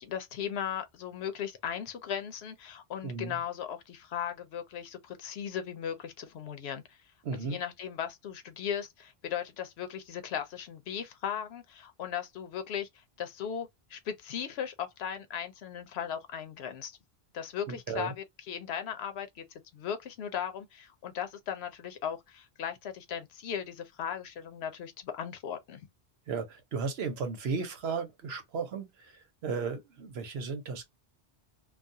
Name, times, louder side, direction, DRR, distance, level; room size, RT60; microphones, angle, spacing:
voice 1, 0.0-7.0 7.4-17.0 17.3-19.4 19.7-25.8, left 8 dB, 85° left, 0.8 m, -37 dB
voice 2, 3.0-3.3 7.2-7.6 17.7-18.1 26.3-28.9 29.4-30.8, right 5 dB, 80° right, 1.0 m, -34 dB
2.3 x 2.3 x 2.6 m
omnidirectional pair, 1.0 m